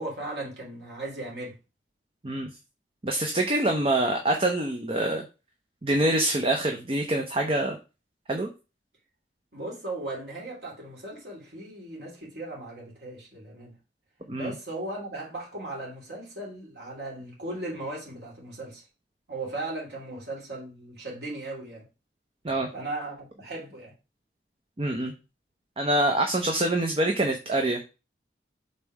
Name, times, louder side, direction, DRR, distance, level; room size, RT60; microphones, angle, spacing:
voice 1, 0.0-1.6 9.5-13.7 14.3-18.8 19.3-21.8 22.7-23.9, right 2 dB, 70° right, 3.0 m, -37 dB
voice 2, 3.0-5.2 5.8-7.8 8.3-8.5 14.3-14.5 22.4-22.7 24.8-25.1 25.8-27.8, right 1 dB, 30° right, 0.7 m, -25 dB
5.4 x 4.1 x 4.6 m
head